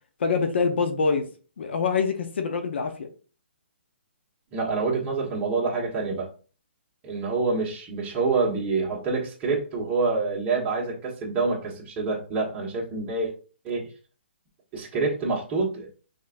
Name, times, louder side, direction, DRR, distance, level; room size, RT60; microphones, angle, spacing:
voice 1, 0.2-1.3 1.6-3.1, left 5 dB, 65° left, 6 dB, 0.8 m, -25 dB
voice 2, 4.5-6.3 7.0-13.3 13.6-13.8 14.7-15.9, right 4 dB, 20° right, -3 dB, 1.5 m, -27 dB
5.3 x 3.6 x 2.6 m, 0.38 s
hypercardioid pair, 155°, 6 cm